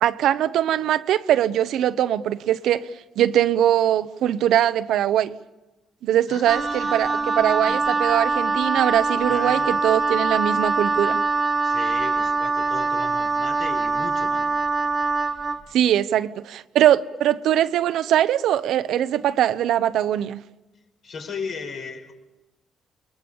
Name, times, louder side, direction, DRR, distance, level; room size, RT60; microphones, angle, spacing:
voice 1, 0.0-2.9 3.2-5.3 6.0-11.2 15.7-20.4, right 11 dB, 80° right, 0.8 m, -21 dB
voice 2, 6.3-8.1 9.3-9.8 11.6-14.5 21.0-22.1, left 5 dB, 65° left, 4.9 m, -37 dB
Wind instrument woodwind instrument, 6.5-15.6, right 3 dB, 30° right, 1.1 m, -23 dB
29.5 x 21.0 x 7.2 m
cardioid pair, 90°, 0 cm